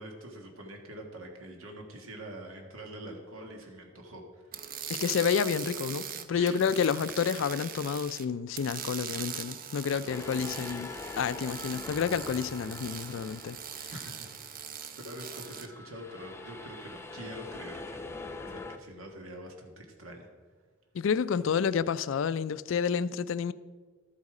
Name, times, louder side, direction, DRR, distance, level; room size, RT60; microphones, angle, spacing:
voice 1, 0.0-4.5 6.3-6.6 9.9-10.7 13.9-14.7 15.0-18.2 18.5-20.3, right 1 dB, 90° right, 1.6 m, -45 dB
sound 1, 4.5-8.2 8.5-15.7, right 8 dB, 45° right, 0.7 m, -41 dB
voice 2, 4.9-10.9 11.2-13.6 13.8-13.9 20.9-23.5, left 6 dB, 65° left, 0.4 m, -29 dB
sound 2, 10.1-14.7 15.1-18.8, left 3 dB, 15° left, 0.6 m, -44 dB
12.5 x 8.2 x 4.9 m
head